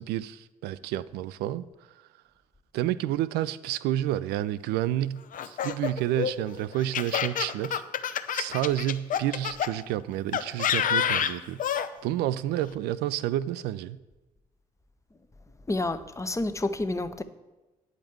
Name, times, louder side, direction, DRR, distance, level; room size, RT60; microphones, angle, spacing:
voice 1, 0.0-1.7 2.7-7.8 8.3-11.6 12.0-14.0, right 13 dB, 60° right, 17 dB, 0.4 m, -30 dB
Laughter, 5.3-9.7 10.3-11.9, left 9 dB, 45° left, 0.7 m, -28 dB
voice 2, 15.7-17.2, left 2 dB, 15° left, 11 dB, 0.8 m, -29 dB
9.4 x 5.2 x 7.8 m, 1.1 s
figure-of-eight pair, 40°, 18 cm